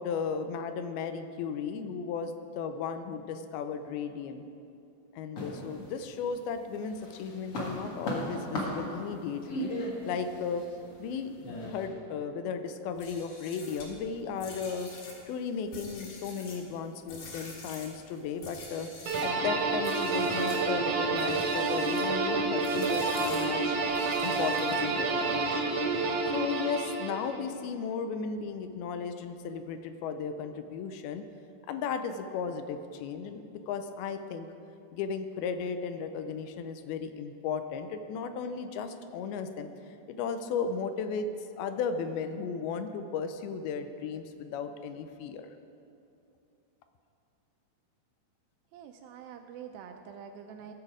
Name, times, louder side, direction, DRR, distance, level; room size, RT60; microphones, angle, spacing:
voice 1, 0.0-4.4 5.1-10.7 11.0-14.9 15.3-18.9 19.2-23.8 24.2-25.8 26.2-31.2 31.7-34.5 34.9-39.7 40.1-41.3 41.6-45.5, left 6 dB, 80° left, 8 dB, 2.4 m, -35 dB
sound 1, 5.4-6.4 6.8-11.9, equal, 50° left, 2.0 m, -37 dB
sound 2, 12.9-19.4 19.8-20.7 21.1-22.1 22.6-25.0, left 3 dB, 65° left, 3.1 m, -47 dB
sound 3, 19.1-27.4, right 3 dB, 60° right, 1.7 m, -29 dB
voice 2, 48.7-50.7, right 7 dB, 80° right, 5 dB, 2.1 m, -46 dB
16.0 x 6.7 x 4.8 m, 2.6 s
omnidirectional pair, 4.5 m